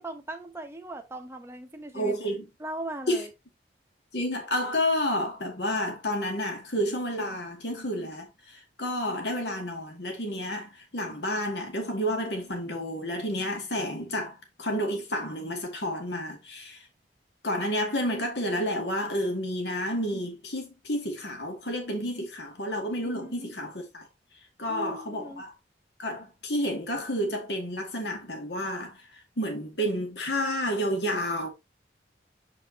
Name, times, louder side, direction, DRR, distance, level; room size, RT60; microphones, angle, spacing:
voice 1, 0.0-2.2 2.6-3.3 23.0-23.5 24.7-25.4, right 2 dB, 15° right, 1.0 m, -39 dB
voice 2, 1.9-2.4 3.1-3.2 4.1-16.8 17.4-24.1 24.6-25.5 26.0-29.0 29.4-31.5, equal, 65° left, 2.2 m, -30 dB
7.0 x 5.3 x 2.9 m
head